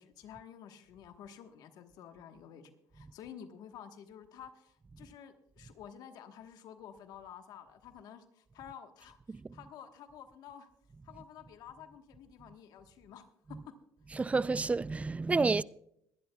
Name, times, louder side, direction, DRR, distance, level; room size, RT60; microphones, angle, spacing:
voice 1, 0.0-10.7 11.0-13.7, left 8 dB, 70° left, 1.2 m, -51 dB
voice 2, 14.1-15.6, right 4 dB, 20° right, 0.3 m, -30 dB
21.5 x 11.5 x 2.3 m
supercardioid pair, 80°, 7 cm